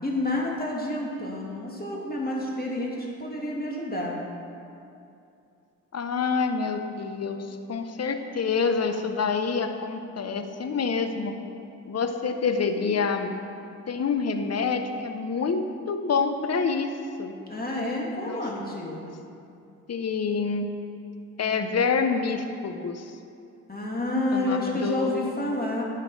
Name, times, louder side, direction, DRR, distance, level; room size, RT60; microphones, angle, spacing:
voice 1, 0.0-4.2 17.5-19.0 23.7-25.8, left 1 dB, 25° left, -2 dB, 2.9 m, -29 dB
voice 2, 5.9-11.3 11.9-13.3 13.9-16.9 17.2-17.4 18.3-18.4 19.9-20.7 21.4-23.2 24.3-25.3, left 5 dB, 40° left, 7 dB, 1.1 m, -27 dB
11.0 x 8.3 x 4.9 m, 2.6 s
hypercardioid pair, 45°, 39 cm